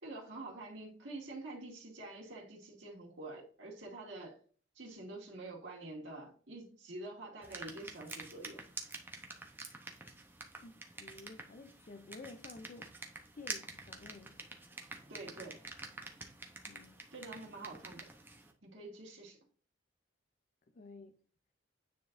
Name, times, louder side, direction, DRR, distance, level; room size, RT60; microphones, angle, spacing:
voice 1, 0.0-4.4 4.7-8.6 15.1-15.6 17.1-18.1 18.6-19.4, right 2 dB, 65° right, 2.2 m, -47 dB
sound 1, 7.4-18.5, right 2 dB, 10° right, 0.8 m, -48 dB
voice 2, 10.6-12.9 13.4-14.3 16.7-17.0 20.7-21.2, left 3 dB, 40° left, 0.4 m, -52 dB
9.4 x 3.9 x 2.6 m
head